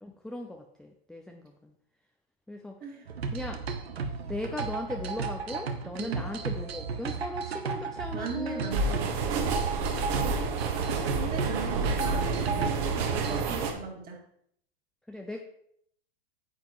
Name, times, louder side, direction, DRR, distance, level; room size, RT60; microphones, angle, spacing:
voice 1, 0.0-1.7 2.5-2.8 3.3-3.6 4.3-8.8 9.3-9.7 10.2-10.8 12.6-12.7 15.1-15.4, left 1 dB, ahead, 3 dB, 0.5 m, -38 dB
sound 1, 3.1-13.6, right 5 dB, 85° right, 1.0 m, -35 dB
voice 2, 5.9-6.3 8.1-9.2 11.1-14.2, right 4 dB, 30° right, 1 dB, 2.1 m, -38 dB
sound 2, 8.7-13.7, right 4 dB, 45° right, 1.4 m, -29 dB
9.4 x 7.6 x 3.0 m, 0.69 s
hypercardioid pair, 110°, 30 cm